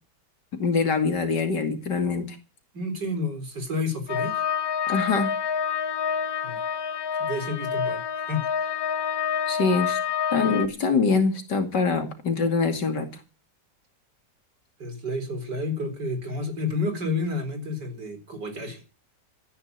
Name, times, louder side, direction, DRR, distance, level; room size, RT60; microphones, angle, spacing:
voice 1, 0.6-2.4 4.9-5.3 9.5-10.0 10.3-13.1, left 4 dB, 80° left, 6 dB, 3.0 m, -24 dB
voice 2, 2.7-4.4 6.4-6.6 7.2-8.7 14.8-18.8, left 2 dB, 80° right, 7 dB, 4.8 m, -30 dB
sound 1, 4.1-10.7, left 7 dB, 60° left, 1.6 m, -28 dB
15.0 x 10.0 x 8.2 m, 0.34 s
omnidirectional pair, 1.8 m